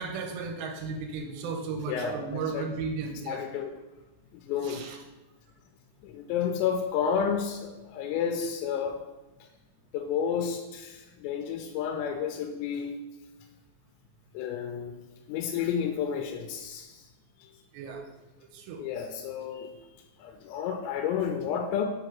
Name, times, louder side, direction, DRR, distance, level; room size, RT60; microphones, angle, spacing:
voice 1, 0.0-3.4 4.6-5.0 17.7-18.0 18.5-18.8, right 5 dB, 85° right, 4 dB, 2.6 m, -35 dB
voice 2, 1.9-2.7 3.3-3.7 4.3-4.8 6.0-9.0 9.9-12.9 14.3-15.0 15.3-17.1 18.8-19.7 20.2-21.8, left 7 dB, 85° left, 3 dB, 2.7 m, -31 dB
7.5 x 2.9 x 5.8 m, 1.1 s
omnidirectional pair, 5.1 m